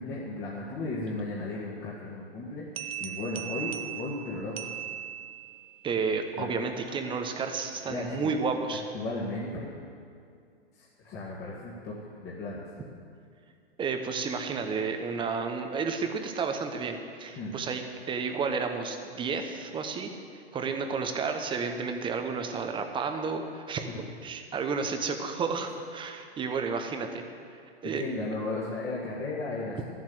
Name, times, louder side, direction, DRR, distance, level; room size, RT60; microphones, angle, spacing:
voice 1, 0.0-4.7 6.4-6.6 7.9-8.3 8.9-9.8 10.7-11.9 12.2-12.6 17.4-17.6 28.0-29.8, left 2 dB, 30° left, -6 dB, 1.9 m, -35 dB
sound 1, 2.8-5.7, right 10 dB, 70° right, 0.9 m, -38 dB
voice 2, 5.8-8.8 13.8-20.1 20.5-27.2 27.5-28.0, right 5 dB, 15° right, 5 dB, 0.9 m, -31 dB
12.5 x 7.7 x 7.9 m, 2.3 s
hypercardioid pair, 125°, 31 cm